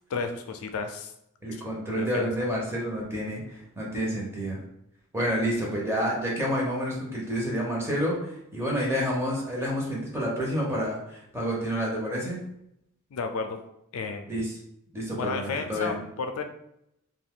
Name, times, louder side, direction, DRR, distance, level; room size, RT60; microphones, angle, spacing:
voice 1, 0.1-1.1 1.9-2.3 13.1-13.6 13.9-14.3 15.2-16.4, left 4 dB, 75° left, 6 dB, 0.4 m, -32 dB
voice 2, 1.4-4.6 5.1-12.4 14.3-14.5 14.9-15.9, equal, 10° right, -4 dB, 0.7 m, -29 dB
2.6 x 2.2 x 3.6 m, 0.79 s
head